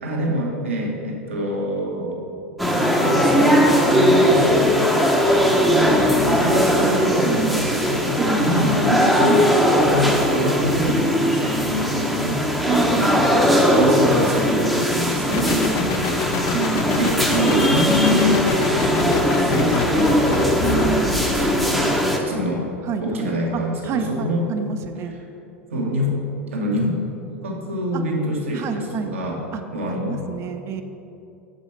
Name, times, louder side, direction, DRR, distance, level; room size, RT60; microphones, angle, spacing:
voice 1, 0.0-2.2 2.7-4.4 5.4-9.5 9.9-12.4 12.7-13.0 13.3-16.2 17.0-20.4 21.4-22.0 22.2-22.6 23.0-24.5 25.1-25.2 25.7-26.2 26.5-27.0 27.4-29.4 29.7-30.2, equal, 85° right, -1 dB, 1.2 m, -25 dB
sound 1, 2.6-22.2, equal, ahead, 0.7 m, -19 dB
voice 2, 7.2-7.8 8.2-8.7 12.7-13.2 15.4-15.9 16.5-17.0 20.6-21.3 22.9-25.1 27.9-28.0 28.5-29.2 29.5-29.6 29.9-30.8, right 6 dB, 40° right, 8 dB, 0.5 m, -28 dB
sound 2, 15.3-21.7, left 5 dB, 50° left, 0.6 m, -26 dB
6.1 x 5.1 x 4.3 m, 2.7 s
hypercardioid pair, 85°, 7 cm